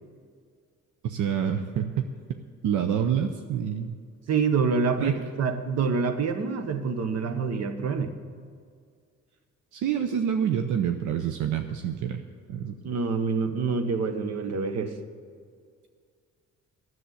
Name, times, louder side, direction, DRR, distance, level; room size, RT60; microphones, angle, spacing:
voice 1, 1.0-2.0 2.6-4.0 5.0-5.1 9.7-12.2 12.5-12.7, right 8 dB, 80° right, 6 dB, 0.7 m, -27 dB
voice 2, 4.3-8.1 12.8-14.9, right 5 dB, 60° right, 9 dB, 1.2 m, -26 dB
10.0 x 7.7 x 9.6 m, 2.1 s
cardioid pair, 90°, 30 cm